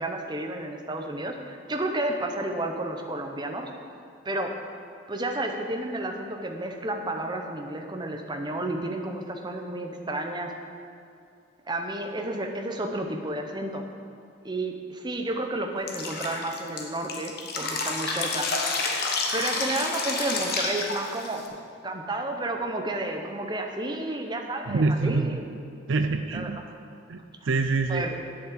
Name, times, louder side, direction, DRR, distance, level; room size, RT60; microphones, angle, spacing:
voice 1, 0.0-3.7 4.2-4.5 5.1-10.5 11.7-13.8 14.4-18.5 19.3-25.4 26.3-26.7 27.4-27.5 27.9-28.2, right 1 dB, 20° right, 4 dB, 0.8 m, -31 dB
Drip, 15.9-21.5, left 3 dB, 50° left, 1.2 m, -29 dB
voice 2, 24.7-25.3 25.9-26.6 27.1-28.0, right 3 dB, 65° right, 7 dB, 0.5 m, -25 dB
8.5 x 7.4 x 7.4 m, 2.5 s
head